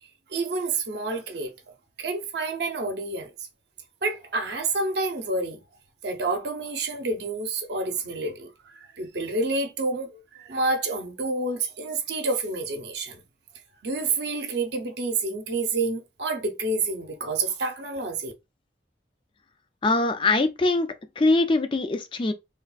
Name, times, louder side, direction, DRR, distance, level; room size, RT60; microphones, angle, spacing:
voice 1, 0.3-1.5 2.0-3.3 4.0-5.6 6.0-13.2 13.8-18.3, right 3 dB, 70° right, 0.6 m, -28 dB
voice 2, 19.8-20.9 21.2-22.3, left 2 dB, 25° left, 0.3 m, -22 dB
3.4 x 2.3 x 2.3 m
head